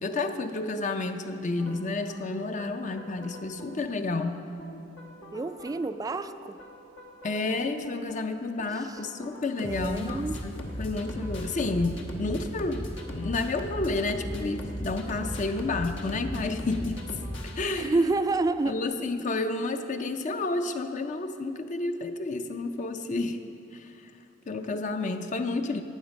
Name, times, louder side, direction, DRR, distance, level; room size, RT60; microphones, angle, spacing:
voice 1, 0.0-4.4 7.2-17.0 17.6-18.1 18.7-23.4 23.7-24.1 24.5-25.8, left 3 dB, 40° left, 7 dB, 0.5 m, -30 dB
sound 1, 1.6-18.2, equal, 80° left, 1.2 m, -39 dB
voice 2, 5.3-6.6 9.6-10.4 17.7-18.7, right 3 dB, 20° right, 11 dB, 0.3 m, -28 dB
11.5 x 8.8 x 5.2 m, 2.8 s
head